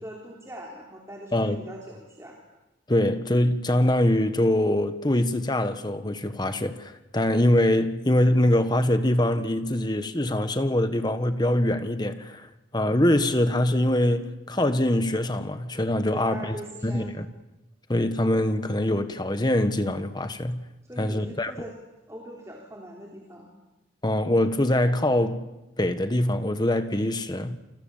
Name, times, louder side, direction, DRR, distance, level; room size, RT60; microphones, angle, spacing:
voice 1, 0.0-2.4 16.1-17.2 20.8-21.8 22.1-23.5, equal, 15° right, 3.5 m, -41 dB
voice 2, 1.3-1.7 2.9-12.5 12.7-16.6 16.8-17.3 17.9-20.6 21.0-21.5 24.0-25.4 25.8-27.6, left 1 dB, 20° left, 1.4 m, -23 dB
29.0 x 25.5 x 7.3 m
head